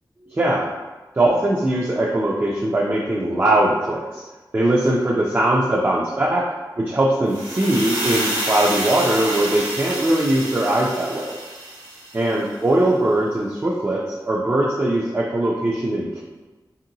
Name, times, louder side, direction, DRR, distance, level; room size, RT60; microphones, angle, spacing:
voice 1, 0.2-0.7 1.2-4.2 4.5-6.5 6.8-11.4 12.1-16.2, right 1 dB, 30° right, -3 dB, 0.3 m, -20 dB
sound 1, 7.3-12.3, right 1 dB, 75° right, 0.8 m, -28 dB
2.9 x 2.7 x 2.6 m, 1.2 s
wide cardioid pair, 100°, 8 cm